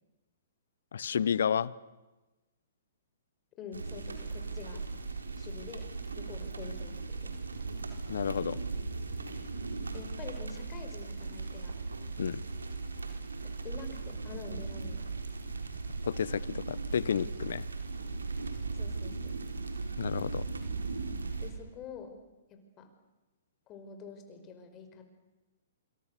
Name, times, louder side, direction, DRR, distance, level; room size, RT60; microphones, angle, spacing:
voice 1, 0.9-1.7 8.1-8.6 12.2-12.4 16.0-17.7 20.0-20.4, left 7 dB, 65° left, 21 dB, 0.9 m, -31 dB
voice 2, 3.6-4.8 5.4-5.9 6.2-7.3 9.9-11.8 13.6-15.1 18.7-19.3 21.4-22.1 22.5-22.9 23.7-25.0, left 5 dB, 25° left, 6 dB, 5.2 m, -46 dB
sound 1, 3.7-21.5, right 3 dB, 80° right, 4.2 m, -38 dB
27.5 x 27.0 x 6.9 m, 1.1 s
figure-of-eight pair, 120°, 0 cm